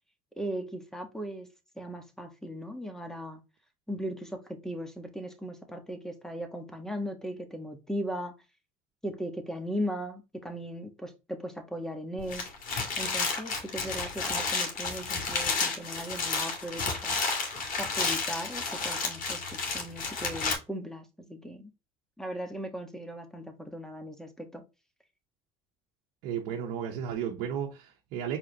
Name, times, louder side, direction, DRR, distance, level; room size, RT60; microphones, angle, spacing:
voice 1, 0.4-1.5 1.8-3.4 3.9-8.3 9.0-12.4 13.0-17.2 17.8-21.7 22.2-24.6, equal, 5° left, 1.4 m, -38 dB
sound 1, 12.2-20.5, left 4 dB, 50° left, 2.2 m, -31 dB
voice 2, 26.2-28.4, right 8 dB, 75° right, 0.9 m, -33 dB
4.7 x 3.7 x 2.9 m
supercardioid pair, 85°, 17 cm